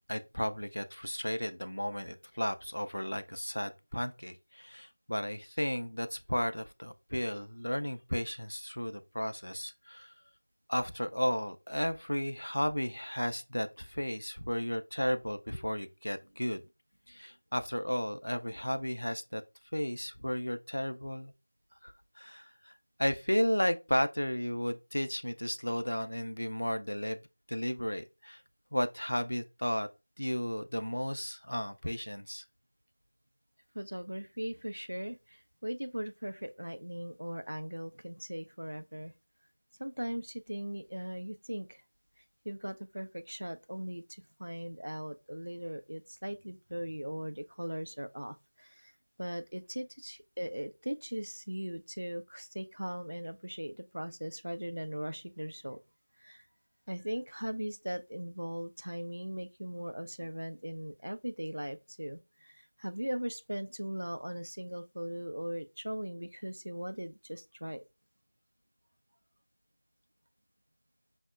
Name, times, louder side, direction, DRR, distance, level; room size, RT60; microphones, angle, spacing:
voice 1, 0.1-10.1 10.7-16.6 17.1-19.4 19.7-21.3 21.8-22.7 23.0-27.2 27.5-28.4 28.7-29.9 30.2-32.4, equal, 65° left, 0.4 m, -34 dB
voice 2, 33.7-39.1 39.8-41.8 42.5-48.9 49.2-55.8 56.2-56.4 56.9-67.8, equal, 60° right, 0.3 m, -39 dB
5.6 x 2.0 x 2.3 m
figure-of-eight pair, 175°, 0 cm